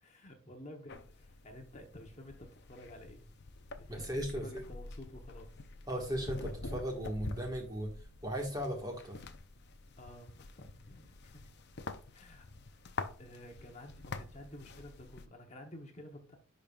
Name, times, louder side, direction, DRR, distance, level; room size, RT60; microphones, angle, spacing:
voice 1, 0.0-3.3 3.8-5.7 10.0-11.5 12.1-16.4, left 1 dB, 30° left, 3 dB, 1.0 m, -52 dB
sound 1, 0.9-15.3, left 3 dB, 50° left, 0.6 m, -47 dB
voice 2, 3.9-4.6 5.9-7.9 8.2-9.2, equal, 15° right, 1 dB, 1.6 m, -37 dB
10.5 x 5.3 x 2.4 m, 0.38 s
head